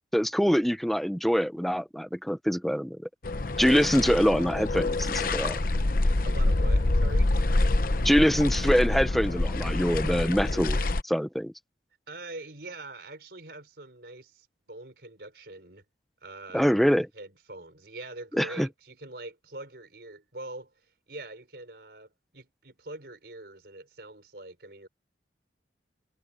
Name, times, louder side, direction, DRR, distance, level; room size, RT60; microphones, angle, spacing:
voice 1, 0.1-3.0 3.6-5.6 8.0-11.5 16.5-17.1 18.3-18.7, equal, ahead, 0.7 m, -24 dB
sound 1, 3.2-11.0, left 2 dB, 50° left, 0.9 m, -26 dB
voice 2, 6.2-7.3 12.1-15.8 16.2-16.8 17.1-20.7 21.1-24.9, right 2 dB, 60° right, 5.1 m, -43 dB
head